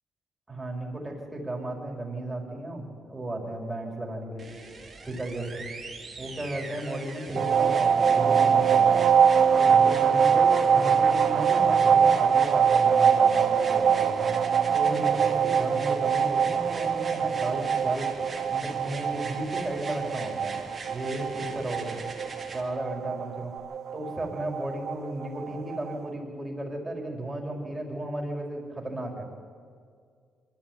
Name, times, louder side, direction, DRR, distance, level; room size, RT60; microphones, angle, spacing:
voice 1, 0.5-4.4 5.0-5.7 6.2-8.9 9.6-14.2 14.7-18.1 18.5-20.6 20.9-22.0 22.5-23.5 23.9-29.2, right 1 dB, 15° right, 0 dB, 5.0 m, -34 dB
sound 1, 4.4-22.6 23.6-23.7, right 4 dB, 30° right, 3.6 m, -42 dB
sound 2, 7.4-25.9, right 7 dB, 60° right, 0.9 m, -23 dB
23.0 x 13.0 x 9.1 m, 2.1 s
cardioid pair, 90°, 0 cm